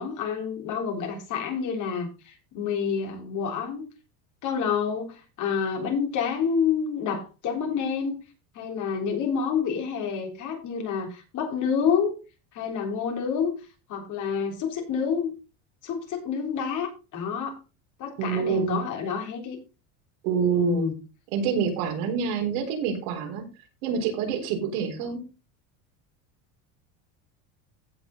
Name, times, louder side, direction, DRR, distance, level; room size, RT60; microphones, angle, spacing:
voice 1, 0.0-3.9 4.4-8.2 8.5-12.2 12.5-13.5 13.9-15.3 15.8-17.6 18.0-19.6 20.5-21.0, left 6 dB, 45° left, 3.5 m, -28 dB
voice 2, 18.2-18.8 20.2-20.9 21.3-23.5 23.8-25.2, right 7 dB, 80° right, 4.1 m, -27 dB
15.5 x 5.5 x 3.8 m
cardioid pair, 145°, 42 cm